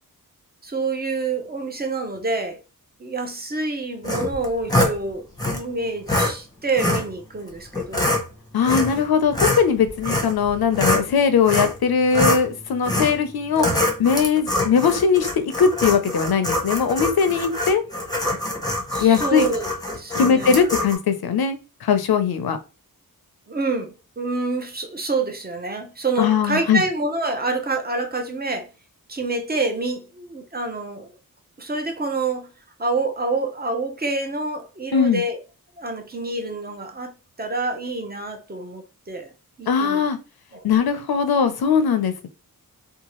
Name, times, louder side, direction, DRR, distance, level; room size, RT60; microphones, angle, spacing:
voice 1, 0.6-2.6 3.0-5.3 5.5-8.1 18.9-20.7 23.5-28.7 29.1-31.1 31.6-32.5 32.8-35.4 35.8-37.1 37.4-39.3 39.6-40.0 40.5-40.7, right 3 dB, 25° right, 0.7 m, -27 dB
sound 1, 4.0-4.9 5.4-5.6 6.1-6.3 6.8-7.1 7.7-8.2 8.6-9.0 9.3-11.1 11.5-11.8 12.1-12.4 12.8-13.2 13.6-21.0, left 1 dB, 10° left, 0.9 m, -24 dB
voice 2, 8.5-13.7 14.0-17.8 19.0-19.5 20.1-22.6 26.2-26.8 34.9-35.2 39.7-40.2 40.6-42.3, left 6 dB, 85° left, 0.5 m, -20 dB
2.8 x 2.3 x 2.9 m
wide cardioid pair, 70°, 36 cm